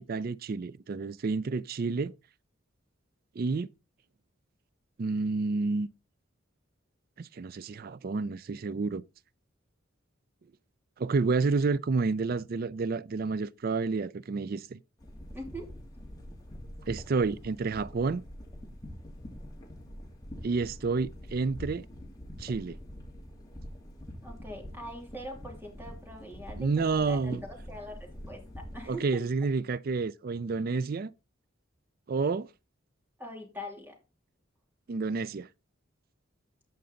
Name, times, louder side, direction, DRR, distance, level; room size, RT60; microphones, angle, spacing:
voice 1, 0.0-2.1 3.4-3.7 5.0-5.9 7.2-9.0 11.0-14.8 16.9-18.2 20.4-21.9 22.4-22.8 26.6-27.4 28.9-31.1 32.1-32.5 34.9-35.5, right 4 dB, 45° right, 0.4 m, -29 dB
sound 1, 15.0-28.9, equal, 20° left, 2.7 m, -45 dB
voice 2, 15.3-15.7 24.2-29.3 33.2-34.0, equal, 10° right, 2.8 m, -43 dB
14.5 x 5.3 x 3.9 m
head